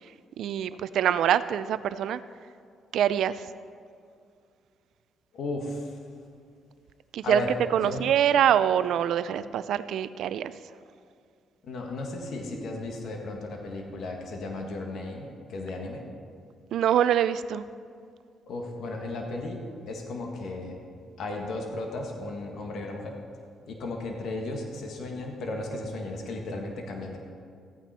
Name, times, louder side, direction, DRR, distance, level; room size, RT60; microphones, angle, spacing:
voice 1, 0.4-2.2 2.9-3.4 7.1-7.4 7.7-10.5 16.7-17.6, right 10 dB, 75° right, 14 dB, 0.4 m, -24 dB
voice 2, 5.3-6.0 7.2-8.1 11.6-16.1 18.5-20.8 21.2-23.2 23.7-27.2, left 2 dB, 70° left, 1 dB, 1.7 m, -35 dB
14.5 x 9.1 x 4.3 m, 2.3 s
cardioid pair, 90°, 0 cm